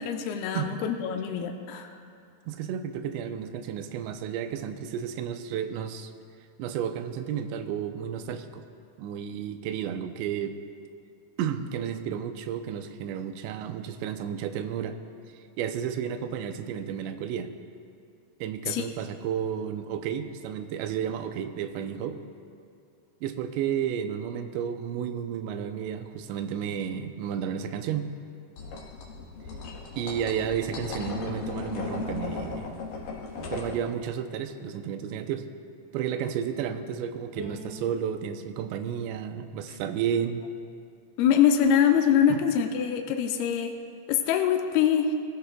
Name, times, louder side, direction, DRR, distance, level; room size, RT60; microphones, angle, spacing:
voice 1, 0.0-1.9 18.7-18.9 41.2-43.7 44.1-45.2, left 8 dB, 85° left, 4 dB, 2.2 m, -24 dB
voice 2, 2.5-6.1 6.6-8.7 9.0-10.6 11.4-15.0 15.3-17.5 18.4-22.2 23.2-28.1 30.0-32.7 33.5-35.5 35.9-40.4 42.3-42.4, right 8 dB, 85° right, 8 dB, 2.9 m, -32 dB
sound 1, 28.6-33.8, left 4 dB, 65° left, 2.6 m, -36 dB
Bowed string instrument, 37.4-40.6, left 1 dB, 35° right, 3.7 m, -47 dB
19.0 x 15.0 x 2.3 m, 2.4 s
omnidirectional pair, 5.0 m